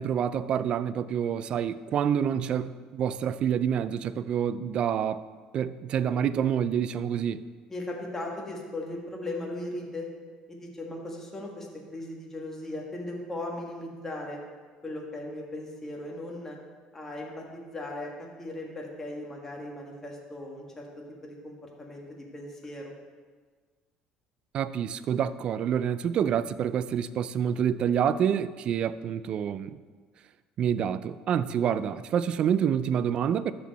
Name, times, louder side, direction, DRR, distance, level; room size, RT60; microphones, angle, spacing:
voice 1, 0.0-5.2 5.5-7.4 24.5-29.8 30.6-33.5, right 8 dB, 50° right, 15 dB, 0.4 m, -27 dB
voice 2, 7.7-10.1 10.5-14.4 14.8-16.6 16.9-18.1 18.4-22.9, left 1 dB, 15° left, -1 dB, 1.7 m, -38 dB
13.0 x 4.5 x 4.1 m, 1.5 s
cardioid pair, 115°, 2 cm